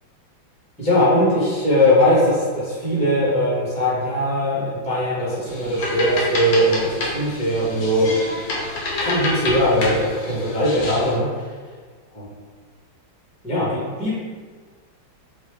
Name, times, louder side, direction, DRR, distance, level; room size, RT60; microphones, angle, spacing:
voice 1, 0.8-8.1 9.0-11.3 12.1-12.3 13.4-14.1, equal, 5° left, -8 dB, 1.0 m, -20 dB
sound 1, 5.5-11.2, left 2 dB, 70° left, 1.4 m, -28 dB
4.6 x 2.8 x 3.3 m, 1.5 s
omnidirectional pair, 2.1 m